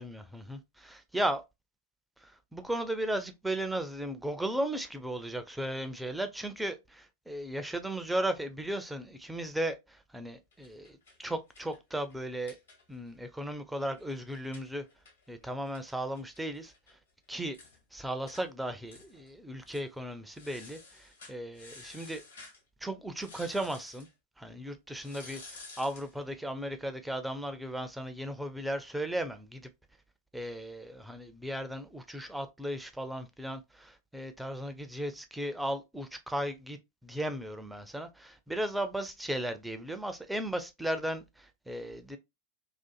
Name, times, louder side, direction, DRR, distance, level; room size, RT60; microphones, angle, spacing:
voice 1, 0.0-1.4 2.2-12.6 12.9-14.8 15.3-16.7 17.3-17.6 17.9-22.2 22.8-24.1 24.4-29.7 30.3-42.2, right 1 dB, 5° right, 0.4 m, -36 dB
sound 1, 10.5-13.1 13.4-13.5 13.8-16.9 17.2-17.3 17.5-17.8 18.3-18.4 18.9-19.3 19.6-19.9 20.3-22.6 23.2-24.1 25.0-26.1, left 3 dB, 65° left, 1.1 m, -52 dB
2.4 x 2.4 x 2.2 m
figure-of-eight pair, 90°, 0 cm